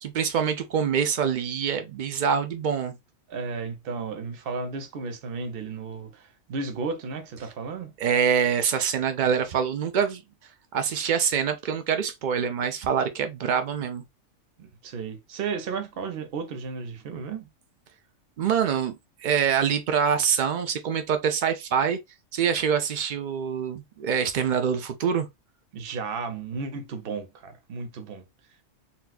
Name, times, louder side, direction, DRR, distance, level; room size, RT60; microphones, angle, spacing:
voice 1, 0.0-3.0 8.0-10.2 10.7-14.0 18.4-18.9 19.2-22.0 22.3-25.3, right 7 dB, 80° right, 0.4 m, -25 dB
voice 2, 3.3-7.9 14.6-17.5 25.7-28.2, right 4 dB, 50° right, 0.8 m, -34 dB
4.1 x 2.2 x 2.3 m
omnidirectional pair, 1.4 m